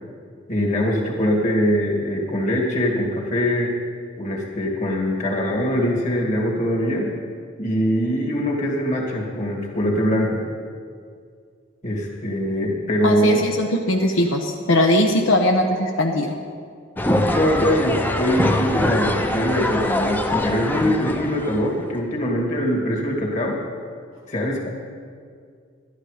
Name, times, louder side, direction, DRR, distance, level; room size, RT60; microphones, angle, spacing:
voice 1, 0.5-3.7 4.2-7.1 7.6-10.4 11.8-13.4 17.3-23.6 24.3-24.7, equal, 40° left, -1 dB, 2.2 m, -22 dB
voice 2, 13.0-16.4, left 1 dB, 80° left, 2 dB, 0.9 m, -20 dB
sound 1, 17.0-21.8, left 1 dB, 10° left, 0.6 m, -23 dB
12.0 x 11.5 x 5.0 m, 2.2 s
head